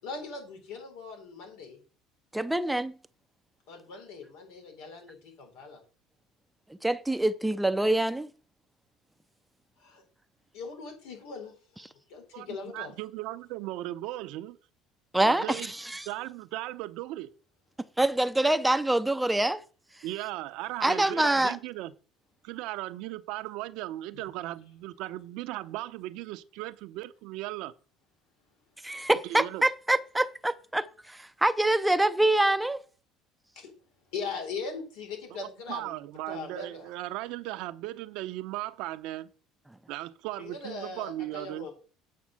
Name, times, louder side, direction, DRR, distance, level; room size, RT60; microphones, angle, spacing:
voice 1, 0.0-1.8 3.7-5.8 9.8-10.0 10.5-12.9 15.5-15.7 24.1-24.3 33.6-33.7 34.1-35.9 36.3-36.9 40.4-41.7, left 4 dB, 85° left, 4.1 m, -40 dB
voice 2, 2.3-2.9 6.8-8.3 15.1-16.1 18.0-19.6 20.8-21.6 28.8-32.8, right 1 dB, 5° right, 0.6 m, -25 dB
voice 3, 12.3-14.6 15.2-15.7 16.1-17.3 20.0-21.9 22.4-27.7 29.2-29.6 35.7-39.3 39.9-41.7, right 16 dB, 75° right, 0.7 m, -37 dB
8.5 x 5.3 x 7.6 m
supercardioid pair, 100°, 0 cm